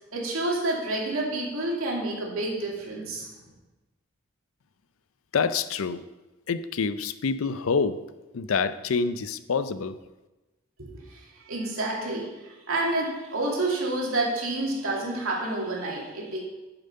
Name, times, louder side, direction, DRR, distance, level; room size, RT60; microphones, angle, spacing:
voice 1, 0.1-3.3 10.8-16.4, right 2 dB, 85° right, -3 dB, 2.6 m, -29 dB
voice 2, 5.3-6.0 6.5-8.0 8.3-10.0, left 5 dB, 80° left, 13 dB, 0.5 m, -27 dB
9.1 x 7.1 x 5.5 m, 1.1 s
head